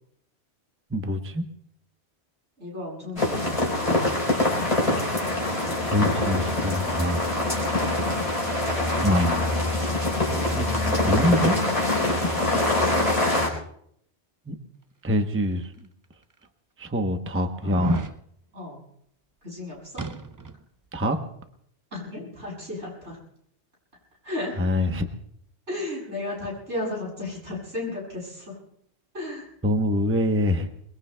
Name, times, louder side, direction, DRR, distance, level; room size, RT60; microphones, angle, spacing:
voice 1, 0.9-1.4 5.9-7.2 9.0-9.5 10.5-11.6 14.5-14.6 15.0-15.7 16.8-18.0 20.9-21.2 24.6-25.1 29.6-30.7, left 1 dB, 10° right, 6 dB, 0.8 m, -25 dB
voice 2, 2.6-5.1 10.9-11.4 12.6-13.0 17.6-17.9 18.5-18.8 19.4-20.1 21.9-23.2 24.2-24.6 25.7-28.6 29.1-29.5, left 2 dB, 85° right, -5 dB, 7.9 m, -35 dB
sound 1, 3.2-13.5, left 2 dB, 30° left, 4.0 m, -24 dB
sound 2, 15.6-15.7 16.4-16.5 17.6-18.2 20.0-20.6 21.0-21.1, right 3 dB, 30° right, 0.4 m, -32 dB
28.0 x 21.0 x 2.2 m, 0.70 s
omnidirectional pair, 1.1 m